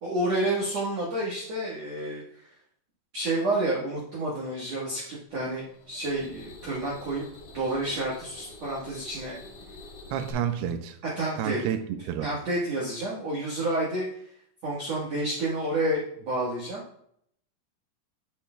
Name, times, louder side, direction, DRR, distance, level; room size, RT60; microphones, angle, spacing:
voice 1, 0.0-2.4 3.1-7.2 7.5-9.4 11.2-11.6 12.2-14.1 14.6-16.8, right 1 dB, 60° right, -6 dB, 1.7 m, -29 dB
sound 1, 5.5-10.3, left 2 dB, 55° left, 5.4 m, -47 dB
voice 2, 10.1-11.0 11.4-12.3, right 9 dB, 80° right, 7 dB, 2.4 m, -30 dB
11.5 x 6.5 x 2.3 m, 0.68 s
omnidirectional pair, 5.1 m